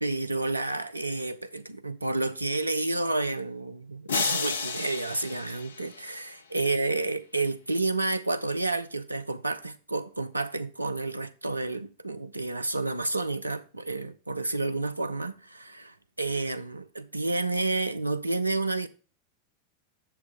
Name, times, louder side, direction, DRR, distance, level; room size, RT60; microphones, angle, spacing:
voice 1, 0.0-18.9, right 2 dB, 85° right, 0.6 m, -30 dB
sound 1, 4.1-6.4, left 5 dB, 70° left, 0.7 m, -32 dB
7.2 x 7.2 x 3.7 m
figure-of-eight pair, 90°, 0 cm